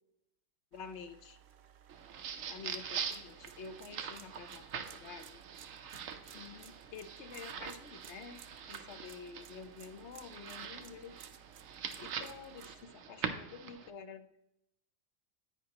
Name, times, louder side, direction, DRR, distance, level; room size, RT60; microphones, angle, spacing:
voice 1, 0.7-1.4 2.5-5.4 6.3-8.4 8.7-11.2 12.0-14.5, left 5 dB, 65° left, 10 dB, 1.0 m, -49 dB
sound 1, 0.7-12.8, right 9 dB, 65° right, 0.9 m, -58 dB
sound 2, 1.9-13.9, right 7 dB, 85° right, 1.2 m, -43 dB
10.5 x 8.6 x 2.9 m, 0.84 s
omnidirectional pair, 1.3 m